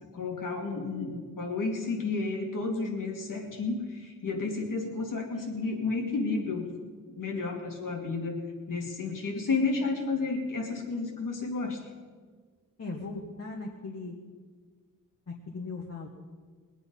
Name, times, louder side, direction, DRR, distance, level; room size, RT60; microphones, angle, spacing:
voice 1, 0.1-6.7 7.2-8.4 8.7-11.8, left 3 dB, 70° left, 1 dB, 2.5 m, -31 dB
voice 2, 12.8-14.1 15.3-16.1, left 3 dB, 50° left, -1 dB, 1.5 m, -38 dB
20.5 x 9.0 x 5.4 m, 1.6 s
wide cardioid pair, 115°, 33 cm